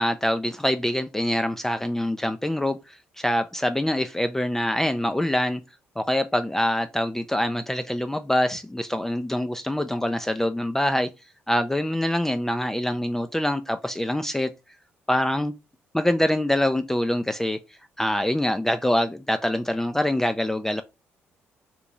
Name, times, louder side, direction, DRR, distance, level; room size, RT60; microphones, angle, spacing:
voice 1, 0.0-5.6 6.0-11.1 11.5-14.5 15.1-15.5 15.9-17.6 18.0-20.8, left 1 dB, 10° left, 0.3 m, -25 dB
3.0 x 2.2 x 3.8 m
supercardioid pair, 75°, 5 cm